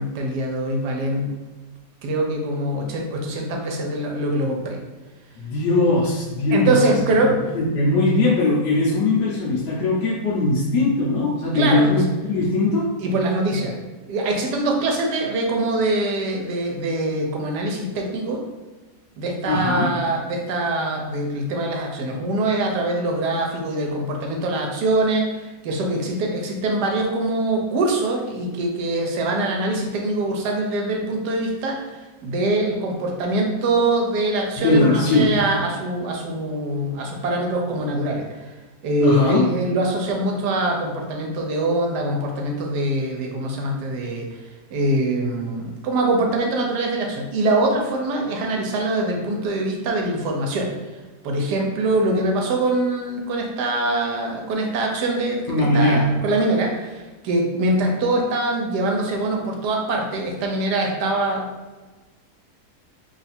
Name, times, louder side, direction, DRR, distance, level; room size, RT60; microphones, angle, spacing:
voice 1, 0.0-1.4 2.0-4.8 6.5-7.4 11.5-11.9 13.0-13.7 14.1-18.4 19.2-31.8 32.2-38.2 38.8-44.3 44.7-50.7 51.2-61.5, right 2 dB, 80° right, 1 dB, 1.3 m, -23 dB
voice 2, 5.4-7.0 7.5-12.9 19.5-19.9 34.6-35.4 39.0-39.5 55.5-56.1, left 2 dB, 85° left, -5 dB, 1.3 m, -20 dB
3.3 x 2.4 x 4.2 m, 1.2 s
omnidirectional pair, 1.8 m